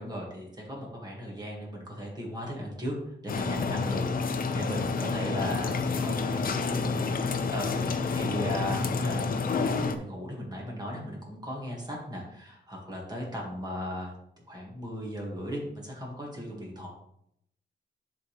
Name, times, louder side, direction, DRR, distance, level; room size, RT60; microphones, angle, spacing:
voice 1, 0.0-3.0 3.2-14.1 14.5-16.9, equal, 20° right, -2 dB, 2.1 m, -37 dB
sound 1, 3.3-10.0, left 4 dB, 50° left, 0.6 m, -29 dB
10.5 x 3.9 x 3.4 m, 0.76 s
wide cardioid pair, 145°, 19 cm